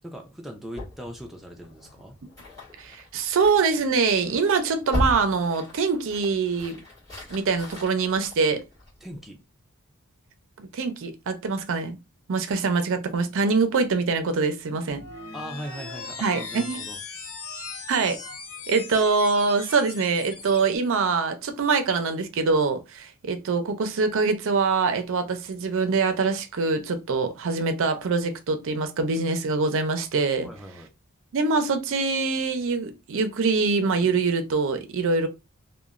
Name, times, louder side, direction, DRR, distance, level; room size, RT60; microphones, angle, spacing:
voice 1, 0.0-2.2 9.0-9.4 15.3-17.0 30.4-30.9, equal, ahead, 0.4 m, -39 dB
sound 1, 0.7-9.2, left 1 dB, 15° left, 1.7 m, -36 dB
voice 2, 2.8-6.8 7.3-8.6 10.6-12.0 12.3-15.0 16.2-16.8 17.9-18.2 18.7-30.5 31.3-35.3, right 4 dB, 60° right, 0.5 m, -24 dB
sound 2, 14.9-20.8, left 4 dB, 75° left, 0.8 m, -39 dB
2.9 x 2.1 x 2.4 m
head